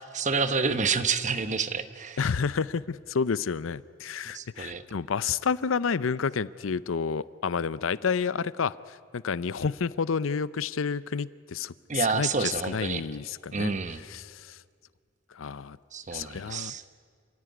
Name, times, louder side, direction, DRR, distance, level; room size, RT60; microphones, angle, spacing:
voice 1, 0.1-2.2 4.3-4.8 11.9-13.0 13.5-14.0 15.9-16.8, right 5 dB, 40° right, 11 dB, 1.0 m, -28 dB
voice 2, 2.2-13.7 14.0-14.6 15.3-15.8 16.1-16.7, left 6 dB, 85° left, 18 dB, 0.6 m, -30 dB
28.5 x 16.0 x 9.5 m, 2.1 s
head